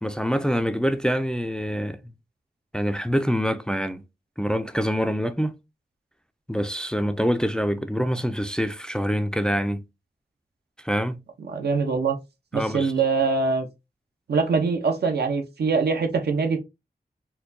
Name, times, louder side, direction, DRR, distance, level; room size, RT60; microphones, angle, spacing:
voice 1, 0.0-2.0 2.7-4.0 4.4-5.6 6.5-9.8 10.8-11.2 12.5-12.9, equal, 5° left, 0.4 m, -25 dB
voice 2, 11.4-12.2 12.5-13.7 14.3-16.6, right 4 dB, 80° right, 0.6 m, -23 dB
4.3 x 2.2 x 2.6 m
wide cardioid pair, 65°, 17 cm